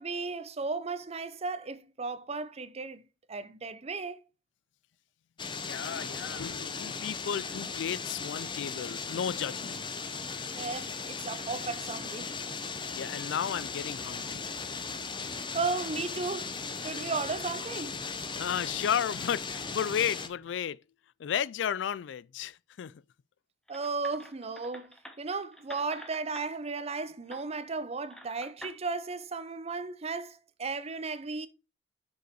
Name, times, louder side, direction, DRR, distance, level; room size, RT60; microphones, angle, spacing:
voice 1, 0.0-3.0 3.3-4.2 10.5-12.3 15.5-18.0 23.7-31.5, right 4 dB, 35° right, 0.6 m, -35 dB
sound 1, 5.4-20.3, left 5 dB, 25° left, 0.8 m, -37 dB
voice 2, 5.5-9.8 12.9-14.5 18.4-20.8 21.2-23.0, left 8 dB, 75° left, 0.3 m, -33 dB
Piano, 13.5-20.5, right 2 dB, 70° right, 1.3 m, -58 dB
sound 2, 23.7-26.5 27.3-27.4 28.1-28.8, equal, 5° left, 1.0 m, -48 dB
6.4 x 5.5 x 4.6 m
head